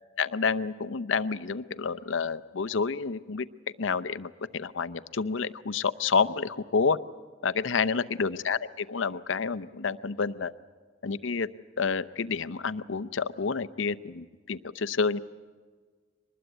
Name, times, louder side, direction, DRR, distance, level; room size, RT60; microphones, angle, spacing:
voice 1, 0.2-3.5 3.8-7.0 7.4-10.5 11.0-11.5 11.8-15.2, left 5 dB, 75° left, 14 dB, 0.7 m, -29 dB
23.5 x 20.5 x 8.2 m, 1.5 s
head